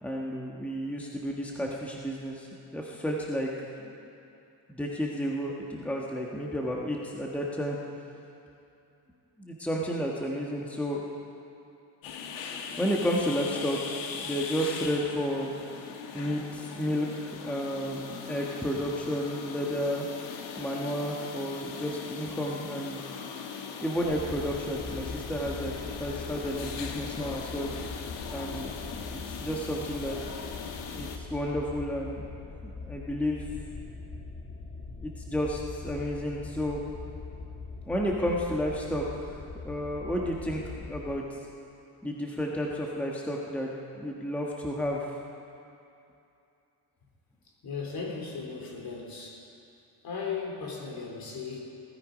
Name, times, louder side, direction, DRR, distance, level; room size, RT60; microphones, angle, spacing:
voice 1, 0.0-3.5 3.8-3.9 4.7-7.8 9.4-11.0 12.8-13.8 14.2-15.5 16.1-20.0 20.6-23.0 23.8-27.7 28.3-28.7 29.1-30.2 30.9-32.2 32.6-33.5 35.0-36.8 37.9-39.0 39.6-40.6 40.9-41.2 42.0-45.1, equal, 5° left, -2 dB, 1.4 m, -32 dB
sound 1, 12.0-31.2, left 6 dB, 85° left, 1.5 m, -40 dB
sound 2, 24.0-41.2, left 4 dB, 25° left, 1.7 m, -42 dB
voice 2, 47.6-49.4 50.0-51.6, left 5 dB, 55° left, 0 dB, 3.4 m, -36 dB
19.0 x 13.0 x 5.2 m, 2.6 s
cardioid pair, 125°, 43 cm